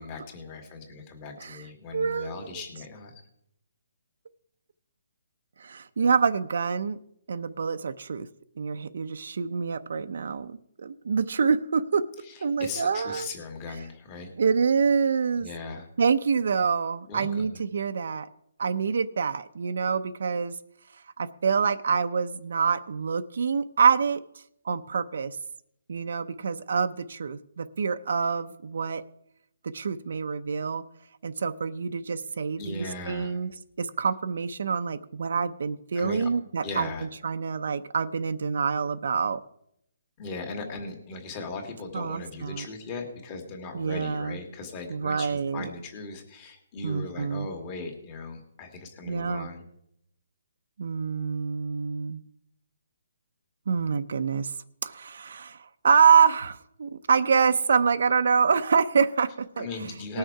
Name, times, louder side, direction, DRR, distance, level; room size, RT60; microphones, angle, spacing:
voice 1, 0.0-3.1 12.2-14.3 15.4-15.9 17.1-17.6 32.6-33.4 35.9-36.3 36.6-37.1 40.2-49.7 59.6-60.2, left 3 dB, 25° left, 4 dB, 2.0 m, -38 dB
voice 2, 1.9-2.5 5.6-7.0 7.3-8.3 8.6-12.1 12.4-13.3 14.4-15.5 16.0-18.3 18.6-20.6 21.2-24.2 24.6-25.4 25.9-29.0 29.6-30.8 31.2-33.5 33.8-36.9 37.2-39.4 41.9-42.7 43.7-44.4 44.9-45.7 46.8-47.5 49.1-49.5 50.8-52.2 53.7-54.5 54.8-59.7 60.1-60.2, right 6 dB, 65° right, 8 dB, 0.6 m, -26 dB
19.5 x 6.5 x 4.7 m, 0.73 s
hypercardioid pair, 165°, 0 cm